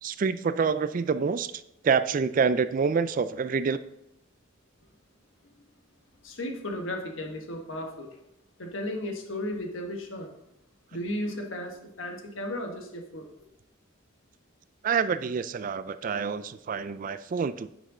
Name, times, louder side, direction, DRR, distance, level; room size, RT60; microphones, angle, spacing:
voice 1, 0.0-3.8 14.8-17.7, right 5 dB, 40° right, 13 dB, 0.3 m, -27 dB
voice 2, 6.2-8.1 8.6-10.3 10.9-13.3, left 1 dB, 75° left, 3 dB, 1.3 m, -34 dB
9.5 x 5.3 x 3.8 m, 0.82 s
head